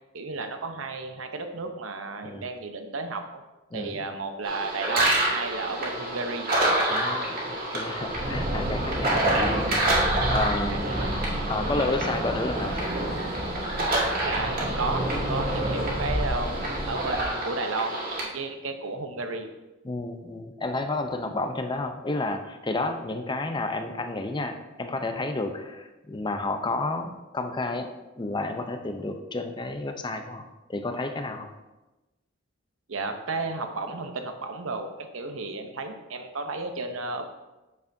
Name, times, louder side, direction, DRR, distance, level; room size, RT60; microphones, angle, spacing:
voice 1, 0.1-3.4 3.7-6.5 10.6-11.1 14.2-16.6 16.9-19.5 32.9-37.3, right 3 dB, 85° right, 6 dB, 0.8 m, -33 dB
voice 2, 3.7-4.1 6.9-10.8 11.5-12.9 19.8-27.9 28.2-31.5, left 2 dB, 25° left, 6 dB, 0.5 m, -31 dB
sound 1, 4.4-18.2, right 1 dB, 45° right, 1.7 m, -28 dB
sound 2, 8.0-17.3, right 1 dB, 30° right, 1.3 m, -30 dB
8.3 x 6.8 x 2.7 m, 1.1 s
head